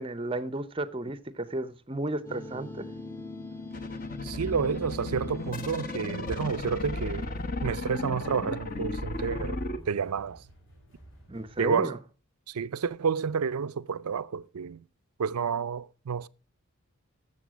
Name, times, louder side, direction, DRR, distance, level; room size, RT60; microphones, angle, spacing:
voice 1, 0.0-2.9 11.3-12.0, right 2 dB, 25° right, 0.6 m, -33 dB
sound 1, 2.2-8.9, left 2 dB, 15° left, 0.9 m, -42 dB
sound 2, 3.7-9.8, left 2 dB, 40° left, 1.0 m, -35 dB
voice 2, 4.2-7.3 7.6-10.4 11.6-12.0 12.5-14.8 15.2-16.3, right 6 dB, 85° right, 0.5 m, -30 dB
sound 3, 5.1-11.7, right 1 dB, 55° left, 4.7 m, -56 dB
12.5 x 7.7 x 6.1 m
head